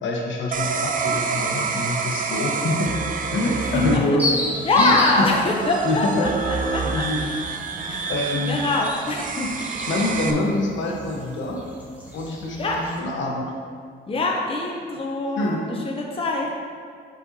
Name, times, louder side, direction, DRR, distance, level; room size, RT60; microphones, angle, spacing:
voice 1, 0.0-3.0 3.3-4.3 4.8-5.3 5.8-6.3 6.9-7.2 8.1-8.6 9.9-11.6 12.1-13.4 15.4-15.6, left 2 dB, 70° left, -1 dB, 1.1 m, -25 dB
sound 1, 0.5-10.3, right 5 dB, 45° right, 0.6 m, -28 dB
voice 2, 3.6-4.2 4.6-7.1 7.9-9.6 12.6-12.8 14.1-16.5, left 2 dB, 30° left, -1 dB, 0.7 m, -24 dB
sound 2, 4.2-13.0, left 1 dB, 10° right, 1.4 m, -34 dB
7.6 x 5.2 x 2.8 m, 2.1 s
cardioid pair, 90°, 20 cm